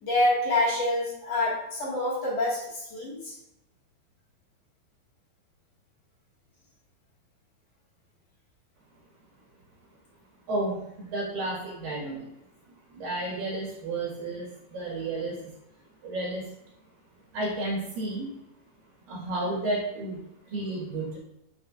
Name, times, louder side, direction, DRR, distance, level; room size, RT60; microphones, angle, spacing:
voice 1, 0.0-3.3, left 1 dB, 50° left, -6 dB, 2.6 m, -26 dB
voice 2, 10.5-12.3 12.9-15.4 16.0-16.5 17.3-18.3 19.1-20.2 20.5-21.2, right 2 dB, 65° right, -4 dB, 3.2 m, -32 dB
8.6 x 6.4 x 2.5 m, 0.84 s
omnidirectional pair, 4.3 m